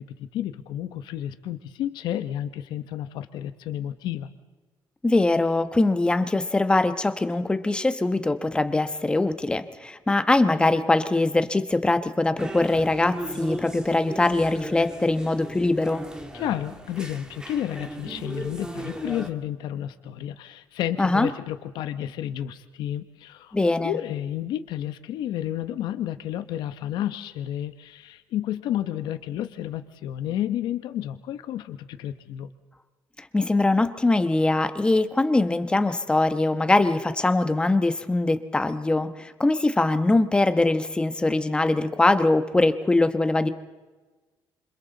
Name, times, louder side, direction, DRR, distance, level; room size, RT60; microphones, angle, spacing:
voice 1, 0.0-4.3 16.3-23.6 23.8-32.5, left 11 dB, 80° left, 10 dB, 1.0 m, -31 dB
voice 2, 5.0-16.0 21.0-21.3 23.5-24.0 33.2-43.5, left 2 dB, 15° left, 10 dB, 1.1 m, -22 dB
sound 1, 12.4-19.3, right 1 dB, 10° right, 1.9 m, -37 dB
28.0 x 26.0 x 4.0 m, 1.3 s
cardioid pair, 130°, 8 cm